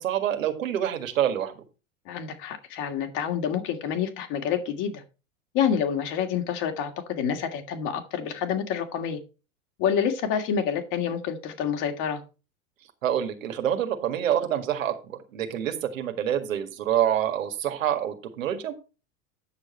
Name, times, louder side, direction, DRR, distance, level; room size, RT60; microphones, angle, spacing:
voice 1, 0.0-1.5 13.0-18.7, right 10 dB, 75° right, 6 dB, 1.9 m, -27 dB
voice 2, 2.1-5.0 5.5-9.2 9.8-12.2, left 8 dB, 50° left, 4 dB, 2.4 m, -28 dB
9.7 x 6.6 x 4.4 m, 0.31 s
hypercardioid pair, 90°, 40 cm